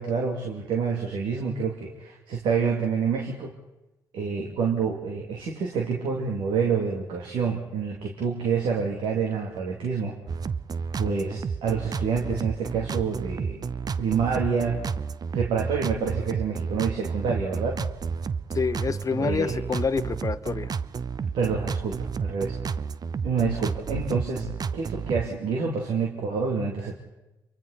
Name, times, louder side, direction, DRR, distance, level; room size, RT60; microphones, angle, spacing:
voice 1, 0.0-3.5 4.1-10.2 11.0-13.6 14.0-14.8 15.3-17.8 19.2-19.6 21.2-22.6 23.2-24.5 24.7-27.0, right 5 dB, 75° right, 1 dB, 2.8 m, -27 dB
sound 1, 10.3-25.3, right 6 dB, 50° right, 0.7 m, -31 dB
voice 2, 18.5-20.7, left 5 dB, 40° left, 9 dB, 1.0 m, -27 dB
28.0 x 23.5 x 4.2 m, 1.0 s
supercardioid pair, 50°, 9 cm